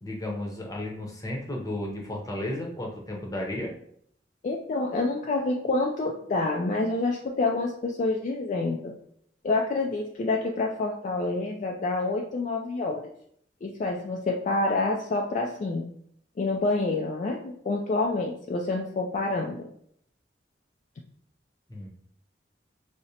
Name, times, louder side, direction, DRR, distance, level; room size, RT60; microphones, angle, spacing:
voice 1, 0.0-3.7 21.7-21.9, left 1 dB, 20° left, -1 dB, 0.7 m, -33 dB
voice 2, 4.4-8.9 9.4-13.0 13.6-15.9 16.4-19.6, left 2 dB, 45° left, 0 dB, 0.3 m, -27 dB
4.8 x 2.0 x 2.7 m, 0.67 s
head